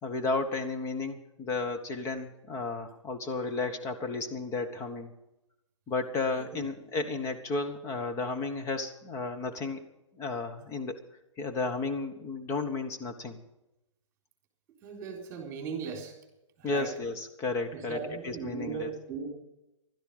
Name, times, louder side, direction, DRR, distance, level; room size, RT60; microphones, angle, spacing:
voice 1, 0.0-5.1 5.9-9.8 10.1-11.0 11.4-13.4 16.6-18.9, left 3 dB, 20° left, 6 dB, 1.4 m, -33 dB
voice 2, 14.8-16.1 16.6-16.9 17.7-19.3, right 5 dB, 15° right, 2 dB, 3.7 m, -38 dB
16.0 x 12.5 x 5.6 m, 0.90 s
figure-of-eight pair, 130°, 16 cm